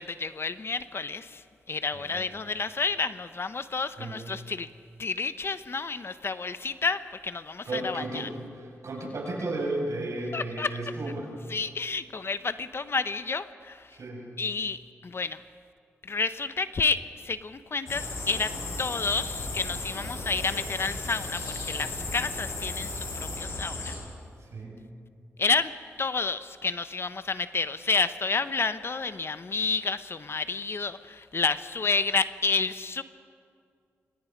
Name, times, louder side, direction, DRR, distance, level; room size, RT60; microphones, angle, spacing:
voice 1, 0.0-4.7 5.0-8.3 10.3-10.8 11.5-14.0 14.4-15.4 16.0-18.5 18.8-24.0 25.4-25.7 26.0-33.0, left 4 dB, 50° left, 12 dB, 1.0 m, -30 dB
voice 2, 7.6-11.3 13.9-14.3 24.4-24.8, right 2 dB, 65° right, -1 dB, 6.6 m, -34 dB
sound 1, 17.9-23.9, left 2 dB, 70° left, 7.2 m, -35 dB
26.5 x 24.5 x 5.3 m, 2.2 s
cardioid pair, 55°, 5 cm